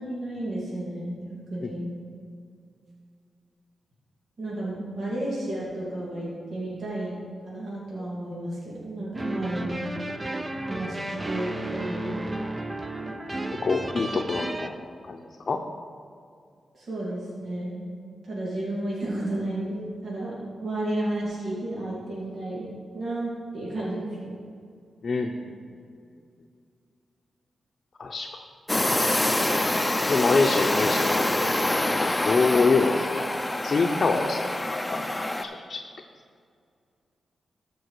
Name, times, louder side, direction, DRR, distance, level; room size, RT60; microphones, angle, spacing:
voice 1, 0.0-1.9 4.4-9.9 10.7-12.4 16.7-17.9 18.2-24.4, right 1 dB, 65° right, -7 dB, 2.3 m, -32 dB
sound 1, 9.1-14.7, right 2 dB, 25° right, 0.6 m, -33 dB
voice 2, 13.6-14.7 15.0-15.6 25.0-25.5 28.0-28.4 30.0-31.2 32.0-33.3 33.6-34.4 34.7-35.1 35.4-35.8, left 4 dB, 55° left, 1 dB, 0.6 m, -25 dB
sound 2, 28.7-35.4, left 1 dB, 15° left, 0.6 m, -26 dB
13.5 x 4.7 x 4.7 m, 2.3 s
supercardioid pair, 50°, 0 cm